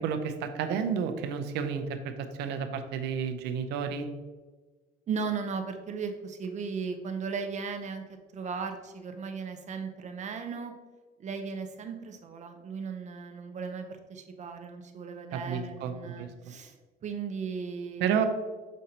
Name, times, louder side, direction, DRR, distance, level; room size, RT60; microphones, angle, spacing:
voice 1, 0.0-4.1 15.3-16.3 18.0-18.3, right 7 dB, 85° right, 8 dB, 0.7 m, -31 dB
voice 2, 5.1-8.0 8.3-10.7 11.2-16.7 17.0-18.2, right 5 dB, 45° right, 5 dB, 0.8 m, -36 dB
6.3 x 5.3 x 2.9 m, 1.3 s
cardioid pair, 110°, 17 cm